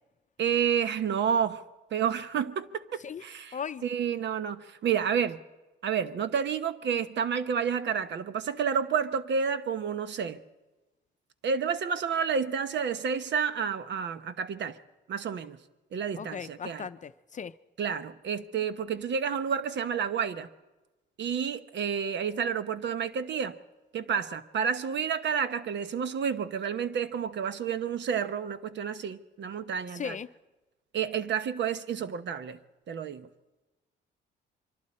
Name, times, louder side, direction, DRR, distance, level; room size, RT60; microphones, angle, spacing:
voice 1, 0.4-1.6 1.9-3.6 3.8-5.4 5.8-10.4 11.4-14.8 15.1-15.6 15.9-16.9 17.8-20.5 21.2-23.5 23.9-30.2 30.9-32.6 32.9-33.3, right 7 dB, 65° right, 1.0 m, -30 dB
voice 2, 3.5-3.9 16.2-17.5 29.9-30.3, left 7 dB, 40° left, 0.6 m, -37 dB
24.5 x 24.5 x 4.3 m
cardioid pair, 90°, 20 cm